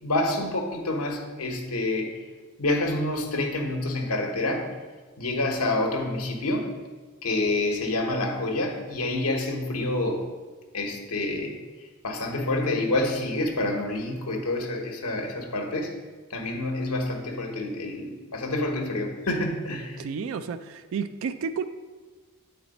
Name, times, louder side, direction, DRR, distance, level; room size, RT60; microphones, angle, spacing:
voice 1, 0.0-2.1 2.6-4.7 5.2-6.7 7.2-10.2 10.7-11.5 12.0-15.9 16.3-20.0, left 2 dB, 85° left, 2 dB, 1.1 m, -27 dB
voice 2, 20.0-21.7, right 6 dB, 65° right, 10 dB, 0.3 m, -31 dB
8.6 x 4.2 x 4.1 m, 1.3 s
head